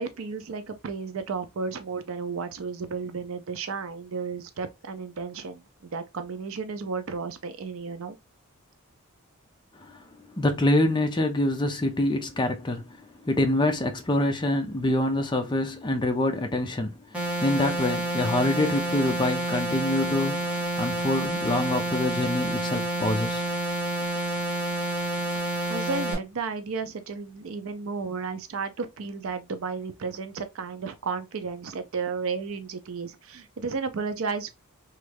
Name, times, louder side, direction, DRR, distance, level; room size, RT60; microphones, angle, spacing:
voice 1, 0.0-5.6 5.9-8.2 25.7-34.5, right 5 dB, 65° right, 0.5 m, -33 dB
voice 2, 9.8-23.4, left 1 dB, 20° left, 0.5 m, -26 dB
sound 1, 17.1-26.1, right 1 dB, 5° right, 0.9 m, -29 dB
3.1 x 2.3 x 3.2 m
head